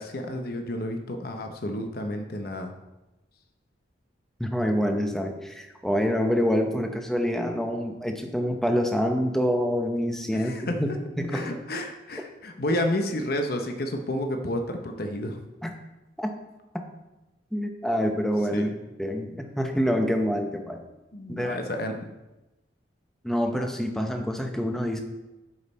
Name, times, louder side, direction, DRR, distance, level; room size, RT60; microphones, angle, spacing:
voice 1, 0.0-2.7 10.3-10.7 11.3-15.4 18.5-18.7 21.1-22.0, left 1 dB, 50° left, 4 dB, 0.8 m, -30 dB
voice 2, 4.4-10.9 11.2-11.5 15.6-15.7 16.2-16.3 17.5-18.7 19.0-20.8 21.3-21.6 23.2-25.0, equal, ahead, 4 dB, 0.7 m, -26 dB
12.5 x 5.4 x 4.2 m, 1.0 s
head